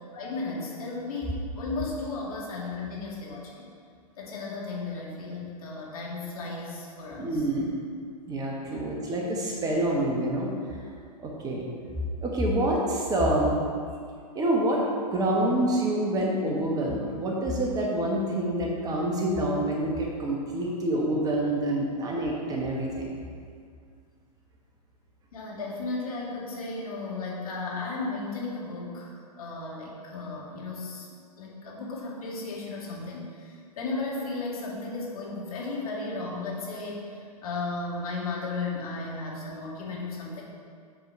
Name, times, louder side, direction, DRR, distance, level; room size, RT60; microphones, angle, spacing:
voice 1, 0.1-3.6 4.2-7.5 8.7-8.8 25.3-31.1 31.4-40.4, left 3 dB, 65° left, -4 dB, 2.0 m, -35 dB
voice 2, 7.2-7.7 8.3-10.5 11.2-11.6 12.2-13.6 14.3-14.9 15.1-23.1, right 1 dB, 20° right, -2 dB, 1.2 m, -27 dB
8.0 x 4.6 x 4.7 m, 2.1 s
figure-of-eight pair, 110°, 20 cm